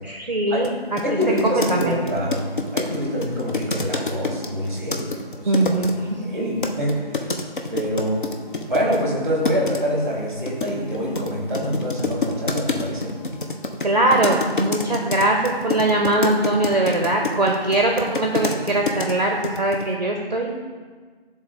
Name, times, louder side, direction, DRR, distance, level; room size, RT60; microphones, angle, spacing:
voice 1, 0.0-1.0 1.4-2.0 5.5-6.2 13.8-20.5, right 2 dB, 45° right, 0 dB, 0.5 m, -21 dB
sound 1, 0.6-0.7 1.0-5.9 6.6-9.0 9.4-9.8 10.5-19.1 19.4-19.9, left 3 dB, 55° left, 0.5 m, -27 dB
voice 2, 1.0-2.4 2.7-5.5 6.2-7.3 7.7-8.3 8.7-13.1, equal, 15° right, -3 dB, 0.9 m, -25 dB
10.0 x 3.6 x 2.6 m, 1.5 s
figure-of-eight pair, 170°, 31 cm